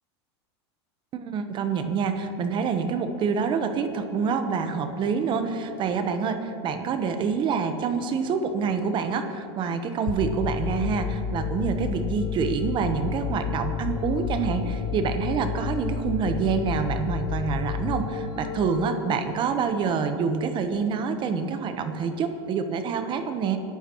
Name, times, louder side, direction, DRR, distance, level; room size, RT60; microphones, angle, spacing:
voice 1, 1.1-23.6, right 5 dB, 35° right, 8 dB, 1.0 m, -27 dB
sound 1, 10.1-19.1, left 7 dB, 30° left, 0.6 m, -30 dB
24.0 x 11.5 x 3.0 m, 2.6 s
supercardioid pair, 125°, 14 cm